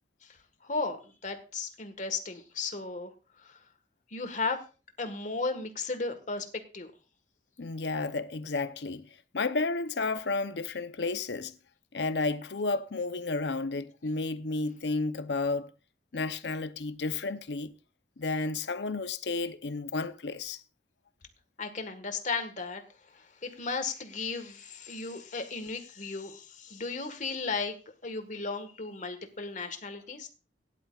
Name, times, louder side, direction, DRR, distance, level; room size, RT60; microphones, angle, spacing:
voice 1, 0.6-3.1 3.4-3.6 4.1-4.6 5.0-6.5 6.7-6.9 21.6-22.8 23.1-27.8 28.0-30.3, left 4 dB, 45° left, 1.6 m, -35 dB
voice 2, 7.6-9.1 9.3-11.5 11.9-15.7 16.1-17.7 18.2-20.6, left 3 dB, 70° left, 0.8 m, -32 dB
17.5 x 11.0 x 2.5 m
head